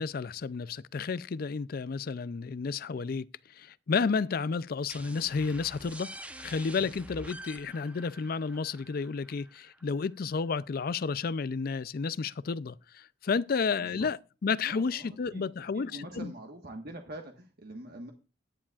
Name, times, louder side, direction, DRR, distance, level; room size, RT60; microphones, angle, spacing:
voice 1, 0.0-3.3 3.6-6.1 6.4-16.3, left 5 dB, 55° left, 0.4 m, -31 dB
sound 1, 4.9-10.3, right 1 dB, 5° right, 0.8 m, -47 dB
voice 2, 14.6-15.4 15.7-18.1, right 1 dB, 55° right, 1.4 m, -44 dB
16.0 x 9.9 x 2.4 m
head